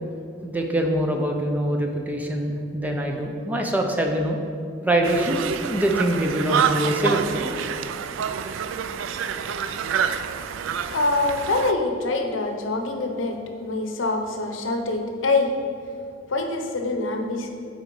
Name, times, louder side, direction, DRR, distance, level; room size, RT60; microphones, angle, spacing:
voice 1, 0.4-4.4 4.8-5.4 5.7-7.5, right 1 dB, 10° right, 2 dB, 0.6 m, -24 dB
Conversation, 5.0-11.7, right 7 dB, 80° right, 0.3 m, -27 dB
voice 2, 10.9-15.5 16.3-17.5, left 2 dB, 80° left, 4 dB, 0.8 m, -25 dB
8.9 x 4.1 x 4.6 m, 2.4 s
head